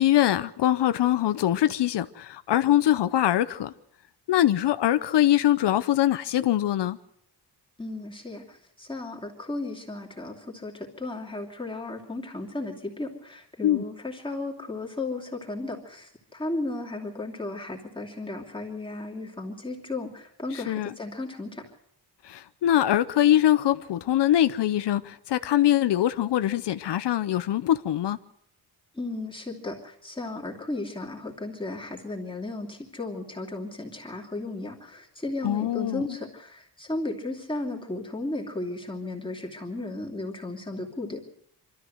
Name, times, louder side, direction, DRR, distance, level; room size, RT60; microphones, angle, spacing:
voice 1, 0.0-3.7 4.3-7.0 13.6-13.8 20.5-20.9 22.3-28.2 35.4-36.1, left 12 dB, 90° left, 0.8 m, -23 dB
voice 2, 7.8-21.6 29.0-41.2, left 2 dB, 10° left, 2.7 m, -35 dB
25.0 x 13.5 x 7.9 m
wide cardioid pair, 155°, 40 cm